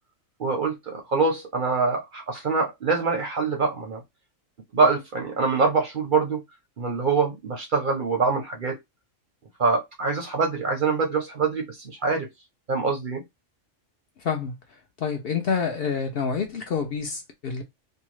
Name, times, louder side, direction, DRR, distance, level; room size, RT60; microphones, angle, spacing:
voice 1, 0.4-4.0 4.7-6.4 6.8-8.8 9.6-12.3 12.7-13.2, right 4 dB, 50° right, 0.6 m, -24 dB
voice 2, 14.2-14.6 15.0-17.6, left 6 dB, 65° left, 0.6 m, -27 dB
2.7 x 2.2 x 3.0 m
omnidirectional pair, 1.4 m